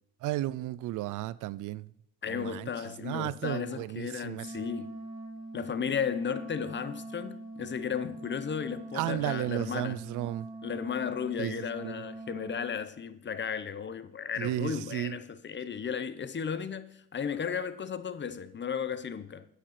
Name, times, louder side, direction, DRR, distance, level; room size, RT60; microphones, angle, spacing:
voice 1, 0.2-1.9 2.3-2.7 3.0-4.5 8.9-10.5 11.4-12.0 14.4-15.2, right 15 dB, 85° right, 0.5 m, -34 dB
voice 2, 2.2-4.9 5.5-10.0 10.6-19.5, left 7 dB, 40° left, 0.9 m, -34 dB
Wind instrument woodwind instrument, 4.3-12.8, right 2 dB, 30° right, 2.8 m, -43 dB
9.7 x 6.6 x 6.5 m
cardioid pair, 90°, 30 cm